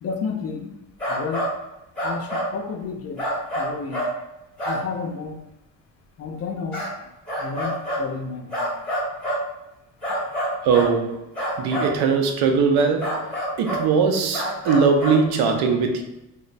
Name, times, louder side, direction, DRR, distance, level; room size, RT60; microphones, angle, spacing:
voice 1, 0.0-0.7 1.1-1.5 2.0-3.3 3.5-4.1 4.7-5.4 6.2-6.8 7.4-8.7, left 5 dB, 40° left, 2 dB, 0.4 m, -31 dB
sound 1, 1.0-1.5 2.0-2.5 3.2-4.1 4.6-4.8 6.7-6.9 7.3-8.0 8.5-9.4 10.0-10.9 11.3-11.9 13.0-13.9 14.3-15.2, equal, 5° left, 1.1 m, -26 dB
voice 2, 10.6-11.2 11.6-13.3 13.6-16.0, right 5 dB, 85° right, 4 dB, 0.6 m, -20 dB
3.0 x 2.0 x 2.5 m, 0.92 s
cardioid pair, 135°, 37 cm